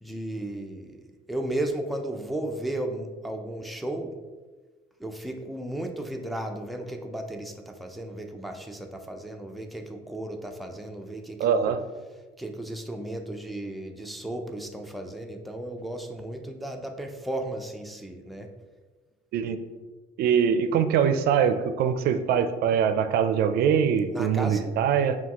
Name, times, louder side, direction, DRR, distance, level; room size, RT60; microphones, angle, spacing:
voice 1, 0.0-4.1 5.0-11.7 12.4-18.5 24.1-24.7, right 1 dB, ahead, 3 dB, 0.4 m, -34 dB
voice 2, 11.4-11.8 19.3-19.6 20.2-25.2, right 7 dB, 65° right, 10 dB, 0.4 m, -23 dB
5.6 x 2.3 x 2.9 m, 1.3 s
cardioid pair, 110°, 17 cm